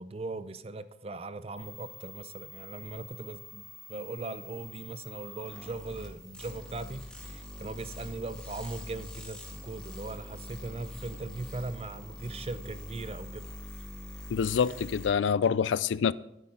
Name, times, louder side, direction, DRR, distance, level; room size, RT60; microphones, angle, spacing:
voice 1, 0.0-13.5, right 2 dB, 30° right, 0.5 m, -39 dB
sound 1, 1.6-15.1, left 1 dB, 5° left, 2.0 m, -45 dB
voice 2, 14.3-16.1, left 6 dB, 80° left, 0.4 m, -26 dB
12.5 x 10.0 x 3.8 m
head